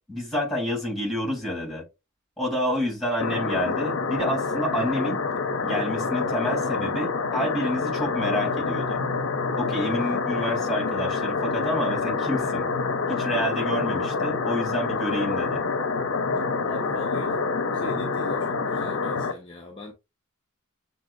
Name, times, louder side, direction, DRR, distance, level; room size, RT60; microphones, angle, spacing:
voice 1, 0.1-1.8 2.4-5.3 5.6-9.0 9.6-12.7 13.1-15.6, equal, ahead, 3.0 m, -28 dB
sound 1, 3.2-19.3, left 4 dB, 70° left, 0.7 m, -27 dB
voice 2, 16.6-17.4 17.7-19.9, left 1 dB, 25° left, 0.8 m, -40 dB
7.4 x 2.7 x 2.4 m
head